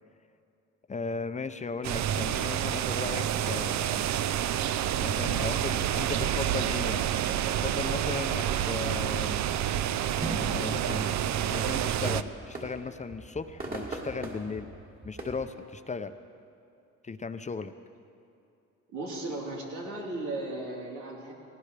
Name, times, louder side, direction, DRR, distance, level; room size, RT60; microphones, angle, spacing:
voice 1, 0.9-4.1 5.0-7.1 7.5-9.4 10.5-11.1 11.4-14.7 15.0-16.1 17.0-17.7, left 4 dB, 25° left, 10 dB, 0.6 m, -36 dB
sound 1, 1.8-12.2, right 10 dB, 65° right, 0.5 m, -28 dB
sound 2, 10.2-15.5, right 2 dB, 30° right, 2.8 m, -40 dB
voice 2, 18.9-21.3, right 2 dB, 85° right, -4 dB, 3.8 m, -36 dB
19.0 x 18.0 x 3.3 m, 2.6 s
cardioid pair, 90°, 30 cm